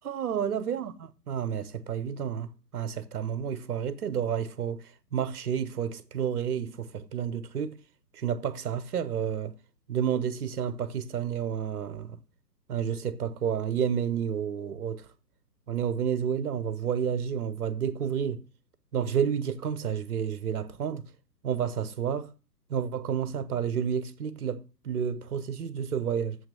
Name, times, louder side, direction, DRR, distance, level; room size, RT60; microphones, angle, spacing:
voice 1, 0.0-4.8 5.1-7.8 8.1-9.5 9.9-12.2 12.7-15.1 15.7-18.4 18.9-21.0 21.4-22.3 22.7-26.4, right 8 dB, 65° right, 1.0 m, -30 dB
7.4 x 5.9 x 6.6 m
figure-of-eight pair, 125°, 49 cm